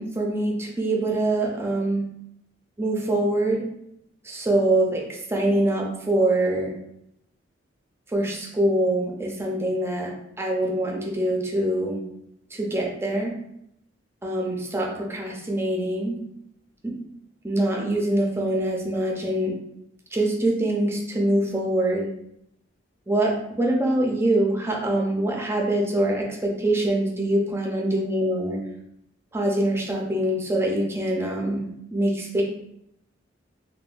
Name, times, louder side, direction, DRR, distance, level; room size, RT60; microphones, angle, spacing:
voice 1, 0.0-2.0 2.8-3.7 4.2-6.7 8.1-12.0 12.5-13.3 14.2-16.2 16.8-16.9 17.4-19.5 20.1-22.1 23.1-28.6 29.3-31.6 31.9-32.4, right 1 dB, 15° right, 0 dB, 0.4 m, -24 dB
3.4 x 2.1 x 2.4 m, 0.77 s
head